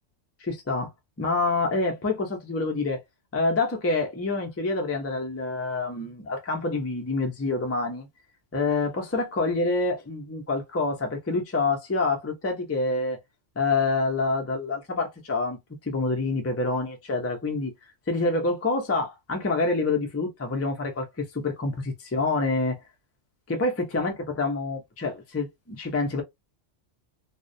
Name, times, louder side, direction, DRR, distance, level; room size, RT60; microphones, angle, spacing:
voice 1, 0.4-0.9 1.2-3.0 3.3-8.1 8.5-13.2 13.6-17.7 18.1-22.8 23.5-26.2, left 3 dB, 20° left, 0.4 m, -27 dB
2.3 x 2.1 x 2.6 m
omnidirectional pair, 1.3 m